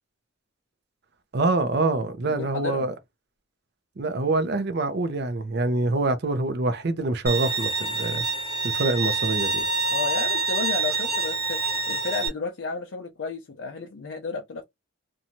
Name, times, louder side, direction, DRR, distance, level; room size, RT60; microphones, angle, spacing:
voice 1, 1.3-2.9 4.0-8.2 8.6-9.7, right 2 dB, 50° right, 0.5 m, -25 dB
voice 2, 2.3-2.9 9.9-11.6 11.9-14.6, left 4 dB, 60° left, 0.5 m, -32 dB
Bowed string instrument, 7.3-12.3, right 3 dB, 15° left, 1.3 m, -26 dB
2.6 x 2.2 x 2.8 m
head